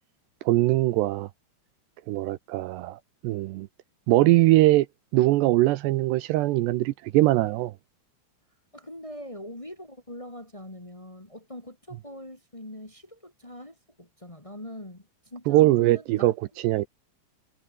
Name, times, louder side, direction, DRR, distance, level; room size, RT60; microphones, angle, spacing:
voice 1, 0.5-1.3 2.1-3.7 4.1-4.9 5.1-7.7 15.5-16.3 16.6-16.9, right 17 dB, 80° right, 2.7 m, -21 dB
voice 2, 8.7-16.3, left 1 dB, 20° left, 0.9 m, -43 dB
omnidirectional pair, 5.4 m